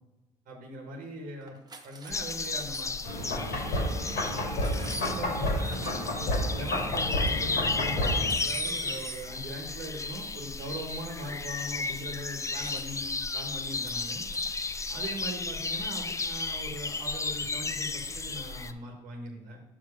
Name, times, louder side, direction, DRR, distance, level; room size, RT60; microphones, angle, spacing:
voice 1, 0.5-1.5 1.8-3.7 5.0-6.1 6.5-14.2 14.9-19.6, right 1 dB, 70° right, 1 dB, 1.2 m, -41 dB
sound 1, 1.4-2.1 2.4-3.1 3.6-3.8 4.6-6.1 6.4-7.4 8.3-9.3 12.6-12.9 13.7-14.0 14.3-14.5, right 3 dB, 25° right, 0.9 m, -44 dB
sound 2, 2.1-18.7, left 4 dB, 20° left, 0.4 m, -34 dB
sound 3, 3.0-8.3, left 1 dB, 70° left, 2.2 m, -30 dB
6.0 x 5.0 x 4.8 m, 1.0 s
hypercardioid pair, 60°, 15 cm